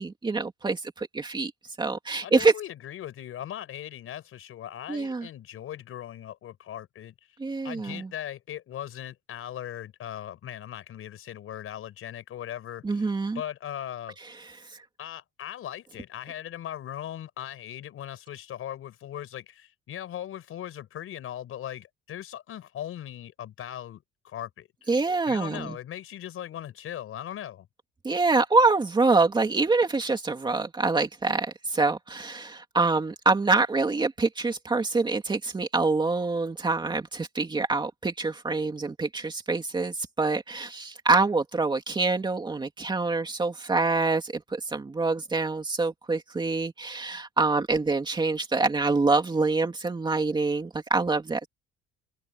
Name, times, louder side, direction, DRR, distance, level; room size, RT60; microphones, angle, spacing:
voice 1, 0.0-1.5 1.8-2.5 4.9-5.3 7.4-8.1 12.8-13.4 14.7-14.8 24.9-25.8 28.0-51.5, right 3 dB, 15° right, 2.8 m, -25 dB
voice 2, 2.2-7.4 7.6-14.2 15.0-25.0 25.3-27.7, left 11 dB, 45° left, 5.2 m, -39 dB
cardioid pair, 180°, 30 cm